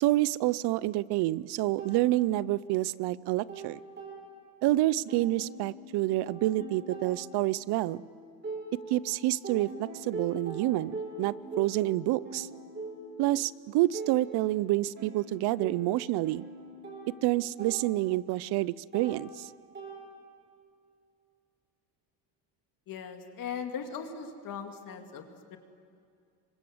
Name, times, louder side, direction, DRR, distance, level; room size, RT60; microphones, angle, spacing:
voice 1, 0.0-3.8 4.6-8.0 8.9-10.9 11.2-12.5 13.2-16.5 17.2-19.5, right 16 dB, 55° right, 21 dB, 0.6 m, -28 dB
sound 1, 1.8-2.9 3.2-4.7 5.1-9.1 9.4-20.5, right 3 dB, 20° right, 6.3 m, -43 dB
voice 2, 22.9-25.6, left 6 dB, 40° left, 6 dB, 2.3 m, -39 dB
27.5 x 24.5 x 7.9 m, 2.3 s
cardioid pair, 165°, 49 cm